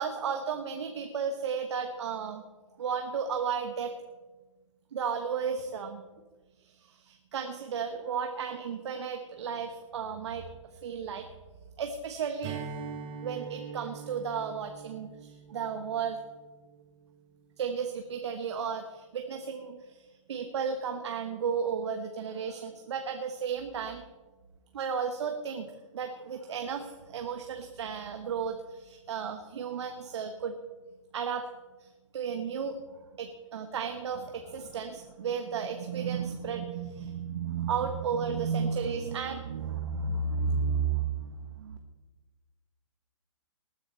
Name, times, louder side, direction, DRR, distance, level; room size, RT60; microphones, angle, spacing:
voice 1, 0.0-2.4 2.8-3.9 4.9-6.0 6.7-10.5 10.8-11.3 11.8-12.6 13.2-16.2 17.6-24.0 24.7-30.5 31.1-31.5 31.8-41.8, right 6 dB, 55° right, 6 dB, 1.2 m, -33 dB
Strum, 12.4-17.2, right 6 dB, 25° right, 2.4 m, -43 dB
19.5 x 9.7 x 4.4 m, 1.3 s
figure-of-eight pair, 130°, 17 cm